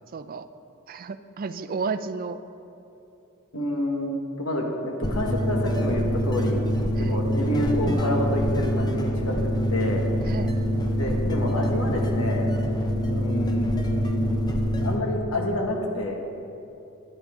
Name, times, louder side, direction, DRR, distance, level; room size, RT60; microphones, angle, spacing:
voice 1, 0.1-0.5 0.9-2.4 7.0-7.2 10.3-10.6, right 4 dB, 40° right, 12 dB, 0.4 m, -32 dB
voice 2, 3.5-6.6 7.0-9.4 9.7-10.1 10.9-12.5 13.1-14.2 14.7-16.2, left 1 dB, 75° left, 1 dB, 1.5 m, -28 dB
sound 1, 5.0-15.0, equal, 20° left, 0.8 m, -25 dB
12.5 x 10.0 x 3.7 m, 2.8 s
head